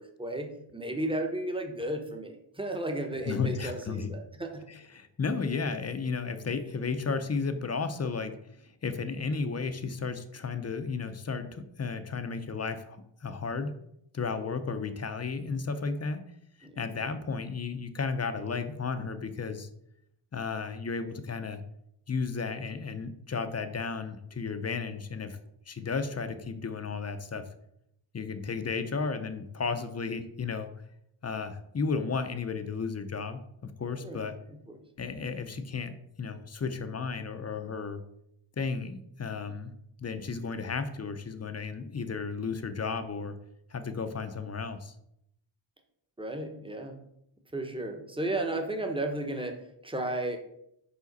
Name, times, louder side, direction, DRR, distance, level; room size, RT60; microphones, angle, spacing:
voice 1, 0.0-4.7 14.2-14.3 16.6-16.8 31.7-31.8 34.0-34.2 34.5-34.8 40.1-40.4 46.2-47.0 47.5-50.4, right 1 dB, 10° right, 4 dB, 0.8 m, -34 dB
voice 2, 3.3-4.1 4.7-8.3 8.6-13.7 14.1-16.2 16.8-19.7 20.3-21.6 22.1-25.4 25.7-27.4 28.1-30.7 31.2-34.4 35.0-38.0 38.6-39.7 40.0-43.4 43.7-44.9, left 4 dB, 35° left, 9 dB, 0.5 m, -33 dB
5.0 x 4.9 x 4.0 m, 0.76 s
wide cardioid pair, 135°, 49 cm